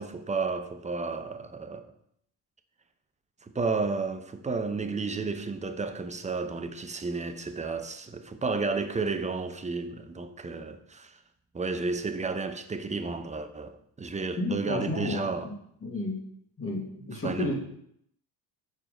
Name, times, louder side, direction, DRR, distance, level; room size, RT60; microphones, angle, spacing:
voice 1, 0.0-1.9 3.4-11.2 11.5-15.5 17.2-17.5, right 4 dB, 15° right, 0.6 m, -32 dB
voice 2, 14.4-15.5 15.8-16.2 16.6-17.5, left 2 dB, 25° left, 2.0 m, -32 dB
6.0 x 4.6 x 5.0 m
supercardioid pair, 80°, 50 cm